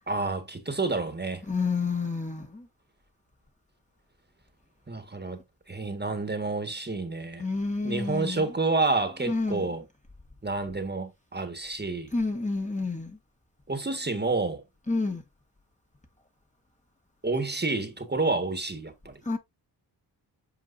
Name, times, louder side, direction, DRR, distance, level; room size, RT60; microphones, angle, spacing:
voice 1, 0.1-1.4 4.9-7.4 7.8-9.8 10.4-12.1 13.7-14.6 17.2-19.2, right 3 dB, 25° right, 1.5 m, -29 dB
voice 2, 1.5-2.7 7.4-8.5 9.3-9.7 12.1-13.2 14.9-15.2 19.2-19.4, left 3 dB, 20° left, 1.5 m, -29 dB
8.4 x 4.5 x 2.5 m
cardioid pair, 75°, 40 cm